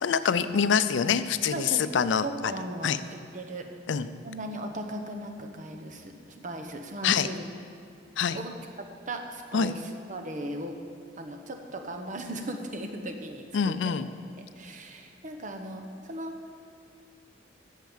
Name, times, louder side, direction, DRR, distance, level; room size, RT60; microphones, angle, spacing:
voice 1, 0.0-2.3 2.8-3.0 3.9-4.1 7.0-7.3 8.2-8.4 9.5-9.7 13.5-14.1, left 7 dB, 75° left, 13 dB, 0.4 m, -25 dB
voice 2, 1.5-1.9 2.2-3.7 4.2-7.5 8.3-8.6 9.1-10.8 11.2-13.9 14.4-16.4, right 1 dB, 45° right, 4 dB, 1.0 m, -37 dB
9.1 x 7.4 x 7.2 m, 2.3 s
head